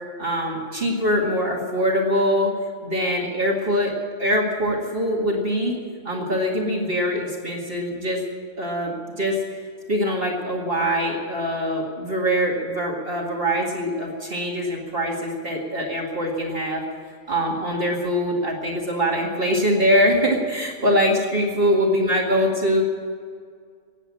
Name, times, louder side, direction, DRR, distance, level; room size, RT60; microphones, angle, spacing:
voice 1, 0.2-2.5 2.8-3.9 4.2-5.8 6.0-8.2 8.6-9.4 9.9-16.8 17.3-22.8, equal, 50° right, -1 dB, 2.2 m, -23 dB
18.0 x 8.1 x 9.7 m, 2.1 s
omnidirectional pair, 1.3 m